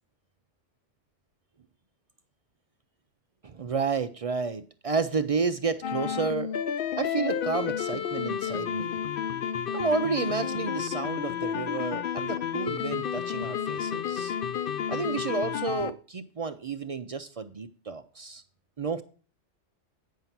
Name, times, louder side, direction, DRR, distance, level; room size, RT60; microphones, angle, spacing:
voice 1, 3.4-6.5 6.9-9.0 9.7-14.4 14.9-18.4 18.8-19.0, right 5 dB, 55° right, 9 dB, 0.4 m, -31 dB
sound 1, 5.8-15.9, left 8 dB, 60° left, 0.7 m, -31 dB
9.3 x 5.6 x 5.8 m, 0.38 s
omnidirectional pair, 1.2 m